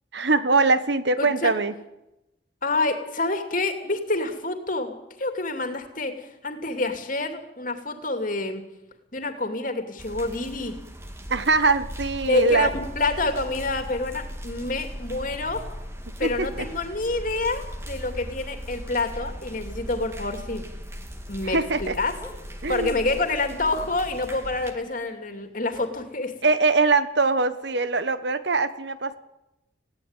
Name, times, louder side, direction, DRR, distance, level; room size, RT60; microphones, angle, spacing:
voice 1, 0.1-1.7 11.3-12.7 16.2-16.7 21.4-21.9 22.6-23.0 26.4-29.2, right 3 dB, 60° right, 13 dB, 1.3 m, -22 dB
voice 2, 1.2-1.5 2.6-4.9 5.2-8.6 9.1-10.8 12.3-15.6 16.2-20.6 21.3-22.1 22.7-26.5, left 2 dB, 45° left, 6 dB, 2.8 m, -27 dB
sound 1, 10.0-24.7, equal, 15° right, 1.9 m, -38 dB
sound 2, 22.2-23.8 24.6-25.0 25.3-25.4 25.7-26.7 27.0-27.1 27.6-27.7, left 1 dB, ahead, 4.3 m, -45 dB
20.0 x 17.0 x 9.1 m, 0.92 s
head